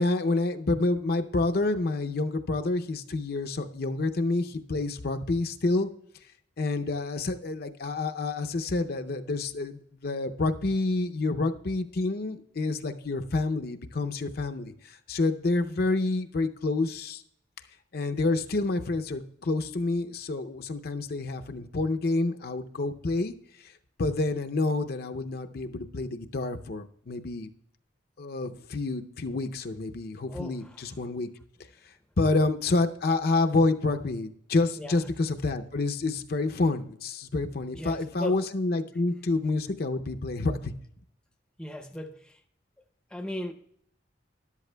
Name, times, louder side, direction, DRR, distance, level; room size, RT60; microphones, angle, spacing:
voice 1, 0.0-5.9 6.6-17.2 17.9-23.7 24.0-27.5 28.2-31.3 32.2-40.7, left 3 dB, 55° left, 0.6 m, -28 dB
voice 2, 30.3-30.8 32.2-32.4 34.8-35.1 37.7-38.4 41.6-42.4 43.1-43.5, left 1 dB, 5° left, 0.6 m, -38 dB
13.0 x 11.0 x 2.2 m
head